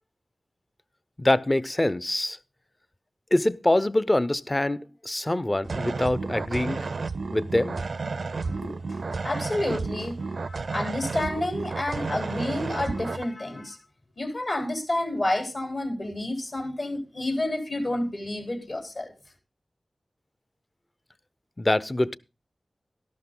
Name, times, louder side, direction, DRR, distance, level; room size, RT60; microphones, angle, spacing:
voice 1, 1.2-2.4 3.3-6.8 7.3-7.8 21.6-22.2, left 1 dB, 25° left, 0.6 m, -24 dB
sound 1, 5.6-13.2, right 4 dB, 80° right, 0.5 m, -32 dB
voice 2, 8.4-13.8 14.2-19.1, left 1 dB, 60° left, 3.9 m, -30 dB
12.5 x 12.0 x 3.7 m
wide cardioid pair, 50°, 0 cm